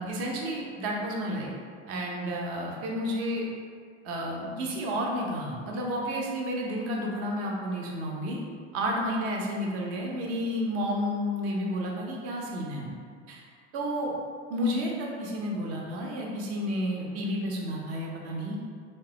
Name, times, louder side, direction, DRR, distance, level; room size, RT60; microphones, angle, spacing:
voice 1, 0.0-1.5 1.9-3.5 4.0-8.4 8.7-12.9 13.3-13.4 13.7-14.1 14.5-18.6, equal, 45° right, -1 dB, 0.6 m, -31 dB
3.3 x 2.1 x 2.7 m, 2.1 s
figure-of-eight pair, 70°, 35 cm